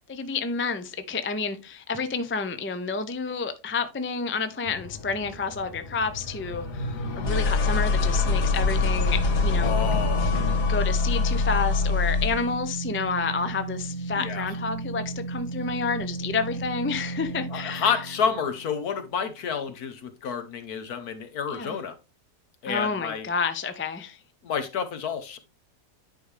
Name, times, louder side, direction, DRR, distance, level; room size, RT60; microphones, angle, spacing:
voice 1, 0.1-9.7 10.7-17.9 21.5-21.8 22.6-24.2, left 4 dB, 20° left, 0.3 m, -30 dB
sound 1, 4.6-12.5, left 4 dB, 90° left, 2.0 m, -25 dB
sound 2, 7.9-19.4, right 3 dB, 35° left, 1.2 m, -35 dB
voice 2, 9.6-10.4 14.2-14.5 17.5-22.0 22.6-23.3 24.4-25.4, left 6 dB, 70° left, 1.6 m, -29 dB
10.0 x 5.1 x 3.4 m
omnidirectional pair, 1.7 m